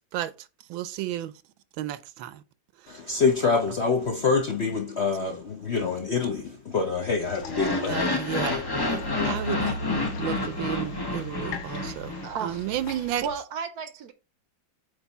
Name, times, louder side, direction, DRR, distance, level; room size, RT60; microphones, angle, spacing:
voice 1, 0.7-1.3 1.8-2.4 7.9-8.6 8.9-9.6 10.2-12.1 12.4-13.3, right 12 dB, 85° right, 1.4 m, -32 dB
voice 2, 2.9-8.2, left 4 dB, 55° left, 0.7 m, -26 dB
sound 1, 7.2-13.4, left 1 dB, 85° left, 1.7 m, -39 dB
sound 2, 7.4-12.6, left 2 dB, 35° left, 0.3 m, -29 dB
voice 3, 12.2-12.7 13.2-14.1, right 6 dB, 65° right, 1.0 m, -33 dB
8.1 x 3.3 x 4.1 m
omnidirectional pair, 2.1 m